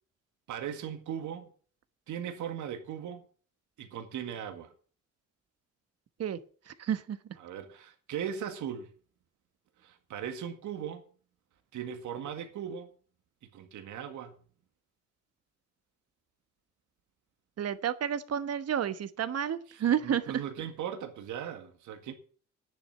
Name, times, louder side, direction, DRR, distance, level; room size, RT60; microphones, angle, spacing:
voice 1, 0.5-1.5 2.1-3.3 3.8-4.7 7.4-8.9 9.8-11.0 11.7-12.9 13.4-14.4 19.7-22.1, right 8 dB, 75° right, 1.9 m, -38 dB
voice 2, 6.7-7.2 17.6-20.4, right 9 dB, 55° right, 1.2 m, -30 dB
9.9 x 7.6 x 8.6 m
cardioid pair, 90°, 30 cm